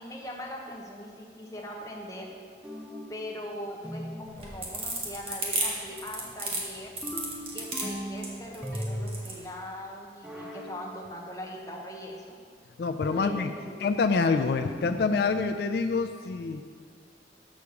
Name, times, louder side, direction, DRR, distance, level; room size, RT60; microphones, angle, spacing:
voice 1, 0.0-2.3 3.1-6.9 7.5-12.4 13.1-13.8, left 1 dB, 20° left, -1 dB, 0.9 m, -41 dB
sound 1, 2.6-3.2 3.8-4.4 7.0-8.2 8.6-9.3 10.2-10.7 13.0-13.5 14.6-15.1, equal, 5° right, 0.6 m, -37 dB
sound 2, 4.3-9.4, right 2 dB, 35° right, 1.2 m, -32 dB
voice 2, 12.8-13.5 13.8-16.6, left 4 dB, 60° left, 6 dB, 0.3 m, -26 dB
6.4 x 4.9 x 6.9 m, 2.1 s
head